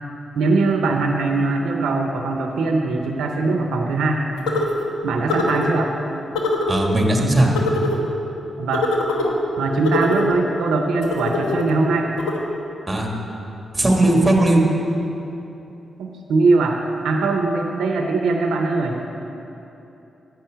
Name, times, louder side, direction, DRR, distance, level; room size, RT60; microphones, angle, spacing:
voice 1, 0.3-4.2 5.0-5.9 8.6-8.9 9.6-12.1 16.0-16.8 17.0-19.0, right 3 dB, 80° right, 2 dB, 0.7 m, -21 dB
sound 1, 4.5-4.8 5.3-5.7 6.3-6.8 7.5-8.0 8.7-9.3 9.8-10.3 11.0-11.7 12.2-12.4, left 2 dB, 80° left, 1.0 m, -23 dB
voice 2, 6.7-7.5 12.9-13.1 13.7-14.6, right 1 dB, 20° right, 0 dB, 2.0 m, -17 dB
9.2 x 5.5 x 7.8 m, 2.9 s
supercardioid pair, 45°, 0 cm